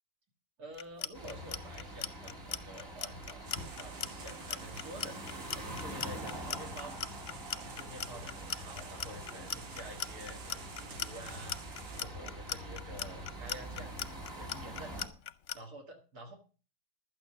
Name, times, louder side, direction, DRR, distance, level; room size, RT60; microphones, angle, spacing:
voice 1, 0.6-7.0 7.6-14.0 14.4-14.9 15.5-16.4, right 1 dB, 70° right, 2 dB, 2.4 m, -49 dB
Clock, 0.7-15.6, left 9 dB, 60° left, 1.0 m, -39 dB
sound 1, 1.1-15.1, right 1 dB, 35° right, 2.7 m, -45 dB
sound 2, 3.4-12.0, right 6 dB, 85° right, 1.9 m, -51 dB
12.0 x 8.9 x 5.8 m, 0.36 s
omnidirectional pair, 1.7 m